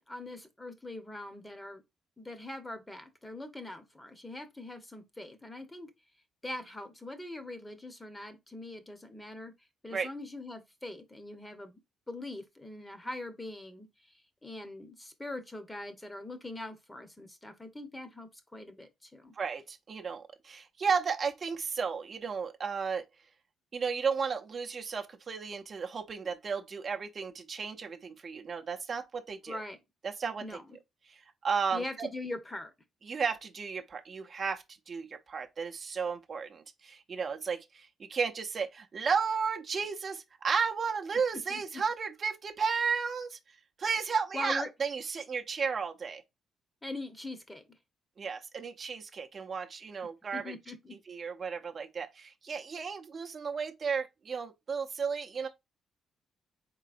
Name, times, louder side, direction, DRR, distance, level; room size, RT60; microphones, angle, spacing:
voice 1, 0.1-1.8 2.2-5.9 6.4-9.5 9.8-11.8 12.1-14.1 14.4-19.3 29.5-29.8 30.4-30.8 31.7-32.7 41.5-41.8 44.3-44.7 46.8-47.6 50.3-50.9, left 2 dB, 15° left, 0.9 m, -42 dB
voice 2, 19.4-23.1 23.7-29.6 30.0-30.6 31.1-32.1 33.1-43.4 43.8-46.2 48.2-50.4 51.1-55.5, right 5 dB, 45° right, 0.6 m, -33 dB
3.9 x 3.7 x 2.5 m
cardioid pair, 90°, 0 cm